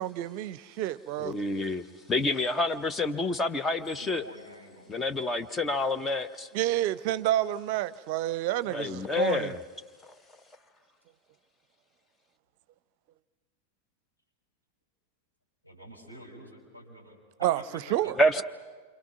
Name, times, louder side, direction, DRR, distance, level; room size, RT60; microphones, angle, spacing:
voice 1, 0.0-1.4 6.5-9.5 17.4-18.4, right 13 dB, 45° right, 0.6 m, -29 dB
voice 2, 1.2-4.2 4.9-6.5 8.7-9.6 18.2-18.4, left 2 dB, 15° left, 0.7 m, -28 dB
voice 3, 3.8-5.1 15.6-17.6 18.0-18.3, equal, 85° left, 6.1 m, -48 dB
28.0 x 26.5 x 6.0 m
figure-of-eight pair, 90°, 0 cm